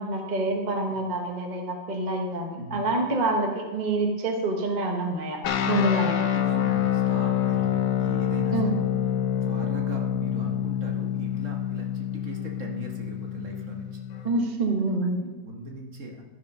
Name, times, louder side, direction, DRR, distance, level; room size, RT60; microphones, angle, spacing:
voice 1, 0.0-6.1 8.5-8.7 14.2-15.2, right 2 dB, 30° right, 2 dB, 1.0 m, -27 dB
voice 2, 2.6-2.9 5.7-5.9 6.2-8.8 9.4-14.0 15.2-16.2, right 1 dB, 50° right, 1 dB, 1.3 m, -39 dB
sound 1, 5.4-14.3, left 10 dB, 65° left, 1.0 m, -27 dB
13.0 x 5.0 x 5.3 m, 1.2 s
omnidirectional pair, 1.8 m